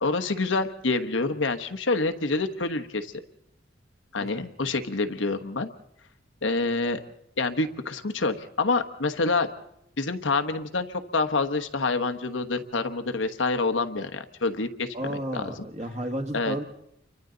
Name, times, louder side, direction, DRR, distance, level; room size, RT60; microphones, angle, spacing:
voice 1, 0.0-3.1 4.1-5.7 6.4-7.0 7.4-9.5 10.0-15.7 16.3-16.6, left 3 dB, 85° left, 7 dB, 1.2 m, -27 dB
voice 2, 14.9-16.6, equal, 35° right, 5 dB, 1.7 m, -32 dB
29.5 x 24.0 x 3.9 m, 0.80 s
head